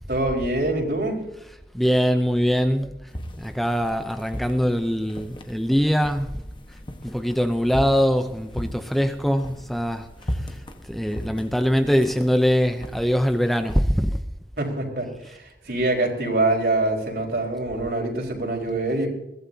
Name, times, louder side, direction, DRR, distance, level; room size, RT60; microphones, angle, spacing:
voice 1, 0.1-1.2 14.6-19.1, right 2 dB, 65° right, 4.6 m, -25 dB
voice 2, 1.7-3.1 3.4-6.4 7.0-10.6 10.9-14.2, equal, ahead, 0.6 m, -22 dB
sound 1, 3.1-13.8, equal, 30° left, 1.3 m, -37 dB
21.5 x 16.0 x 2.8 m
head